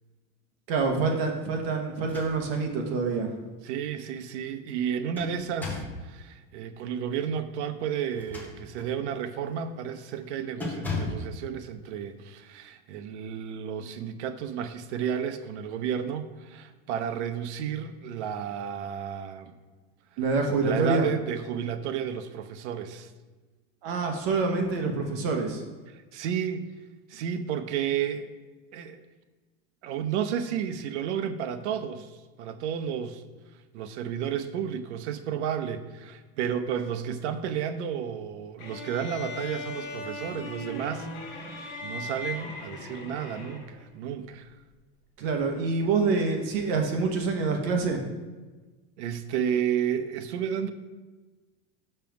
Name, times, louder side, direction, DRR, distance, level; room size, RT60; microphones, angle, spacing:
voice 1, 0.7-3.3 20.2-21.1 23.8-25.6 45.2-48.0, right 4 dB, 60° right, 3 dB, 1.0 m, -26 dB
sound 1, 1.9-2.7 3.1-3.2 4.7-6.0 8.1-9.0 9.5-9.7 10.0-10.2 10.6-11.3, left 3 dB, 5° left, 0.8 m, -36 dB
voice 2, 3.6-19.5 20.6-23.1 25.9-26.7 27.1-28.3 28.7-29.0 29.8-33.2 33.7-44.5 49.0-50.7, right 8 dB, 75° right, 9 dB, 0.7 m, -32 dB
sound 2, 38.6-43.9, left 2 dB, 50° left, 2.0 m, -38 dB
5.5 x 5.2 x 5.8 m, 1.3 s
supercardioid pair, 175°, 34 cm